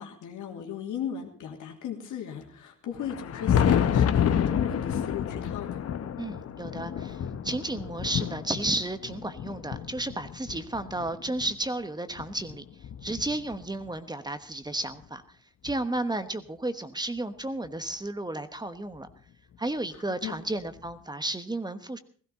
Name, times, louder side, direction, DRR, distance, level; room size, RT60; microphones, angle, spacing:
voice 1, 0.0-5.8 20.2-20.3, left 8 dB, 80° left, 2 dB, 3.0 m, -37 dB
Thunder, 2.9-11.5 12.2-13.9 15.0-15.1 15.7-15.8 17.6-17.7 19.1-19.2 20.8-20.9, left 8 dB, 55° left, 1.0 m, -29 dB
voice 2, 6.2-12.6 13.0-15.2 15.6-19.1 19.6-22.0, right 2 dB, 15° right, 10 dB, 1.1 m, -33 dB
17.0 x 15.0 x 4.2 m, 0.43 s
cardioid pair, 90°, 30 cm